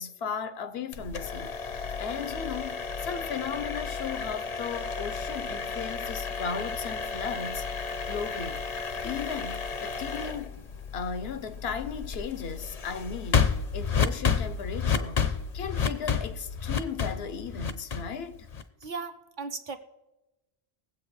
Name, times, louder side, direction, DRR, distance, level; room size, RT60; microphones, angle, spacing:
voice 1, 0.0-1.5 2.0-7.7 8.1-8.6 9.0-10.6 10.9-13.5 13.7-15.3 15.5-18.5, left 6 dB, 75° left, 1.0 m, -36 dB
sound 1, 0.9-18.8, left 6 dB, 45° left, 0.7 m, -31 dB
voice 2, 18.8-19.8, right 4 dB, 50° right, 1.0 m, -36 dB
21.0 x 7.9 x 3.2 m
omnidirectional pair, 1.1 m